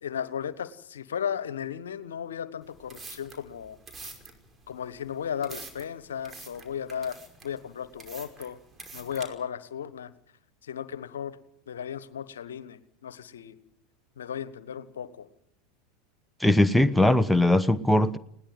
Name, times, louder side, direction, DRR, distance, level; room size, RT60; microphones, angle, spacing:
voice 1, 0.0-3.8 4.7-8.6 8.9-10.1 10.6-11.4 11.7-13.6 14.2-15.3, left 8 dB, 75° left, 1.4 m, -35 dB
sound 1, 2.6-9.2, right 3 dB, 20° right, 5.3 m, -46 dB
voice 2, 16.4-18.2, left 1 dB, 5° left, 1.1 m, -20 dB
20.5 x 18.0 x 7.9 m
figure-of-eight pair, 80°, 0 cm